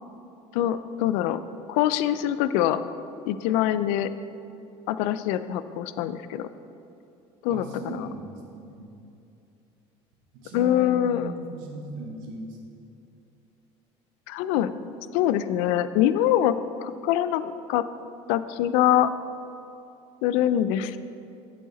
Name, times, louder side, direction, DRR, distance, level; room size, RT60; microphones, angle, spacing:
voice 1, 0.5-1.4 1.7-2.8 3.3-4.1 4.9-6.5 7.4-8.1 10.5-11.3 14.3-14.7 15.1-17.8 18.3-19.1 20.2-21.0, left 11 dB, 75° left, 13 dB, 0.4 m, -24 dB
voice 2, 7.5-8.9 10.3-12.6, right 1 dB, 80° right, -1 dB, 1.7 m, -38 dB
7.7 x 7.5 x 4.1 m, 2.7 s
cardioid pair, 155°, 13 cm